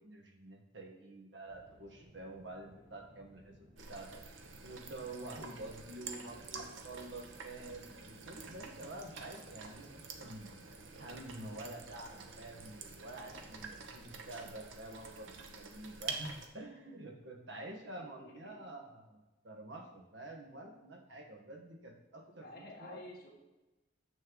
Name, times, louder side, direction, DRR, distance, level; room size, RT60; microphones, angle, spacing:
voice 1, 0.0-4.2 4.6-10.5 11.0-23.0, right 2 dB, 70° right, 2 dB, 1.2 m, -48 dB
sound 1, 1.4-14.4, equal, 35° right, 1.3 m, -62 dB
sound 2, 3.8-16.5, right 5 dB, 90° right, 0.8 m, -48 dB
voice 2, 17.9-18.7 22.4-23.3, left 1 dB, 50° left, -1 dB, 1.5 m, -51 dB
7.5 x 6.4 x 3.8 m, 1.1 s
head